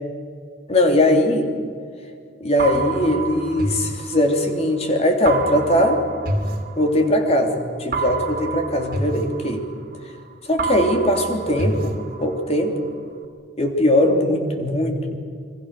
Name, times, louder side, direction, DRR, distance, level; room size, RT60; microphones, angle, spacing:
voice 1, 0.7-1.5 2.4-6.0 6.8-7.5 7.8-9.6 10.5-12.7 13.6-15.2, left 1 dB, 35° left, 3 dB, 3.3 m, -20 dB
sound 1, 2.6-4.7 5.3-7.3 7.9-10.2 10.6-12.7, right 3 dB, 50° right, 2.7 m, -28 dB
28.5 x 23.5 x 6.8 m, 2.2 s
head